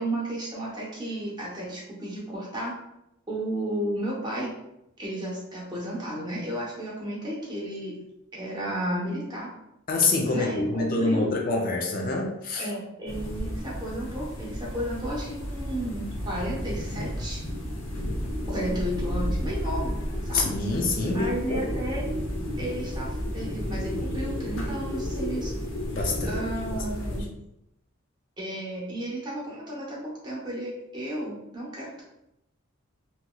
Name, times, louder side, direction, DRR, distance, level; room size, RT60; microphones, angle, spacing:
voice 1, 0.0-2.7 3.3-4.5 5.0-8.0 8.3-9.5 10.3-11.3 12.6-17.4 18.5-20.0 20.2-20.5 21.1-22.0 22.6-25.5 26.3-27.3 28.4-32.0, right 1 dB, 20° right, -5 dB, 0.9 m, -33 dB
voice 2, 9.9-12.7 20.3-21.8 25.9-26.4 26.7-26.8, left 3 dB, 45° left, 1 dB, 0.4 m, -26 dB
sound 1, 13.1-27.2, equal, 75° left, 0.7 m, -32 dB
2.9 x 2.7 x 2.3 m, 0.86 s
head